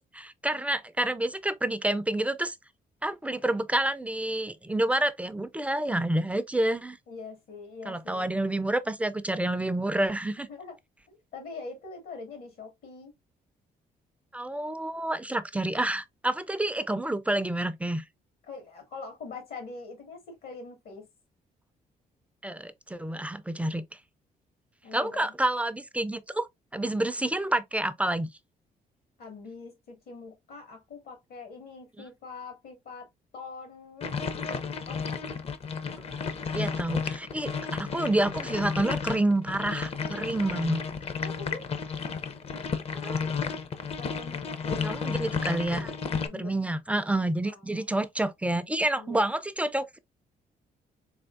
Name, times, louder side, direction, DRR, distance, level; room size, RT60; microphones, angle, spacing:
voice 1, 0.1-2.6 3.0-7.0 7.9-10.5 14.3-18.0 22.4-23.8 24.9-26.5 26.7-28.3 36.1-36.3 36.5-40.8 42.9-43.3 44.8-45.9 46.3-50.0, right 1 dB, 10° right, 0.3 m, -28 dB
voice 2, 7.1-8.2 10.5-10.7 11.1-13.1 18.5-21.1 24.8-25.3 29.2-33.1 33.3-34.2 34.9-35.2 41.2-41.7 44.0-45.9 46.2-46.6 47.5-47.8 49.0-49.3, left 4 dB, 80° left, 2.0 m, -43 dB
sound 1, 34.0-46.3, left 5 dB, 40° left, 0.6 m, -32 dB
3.7 x 3.4 x 2.5 m
cardioid pair, 120°, 15 cm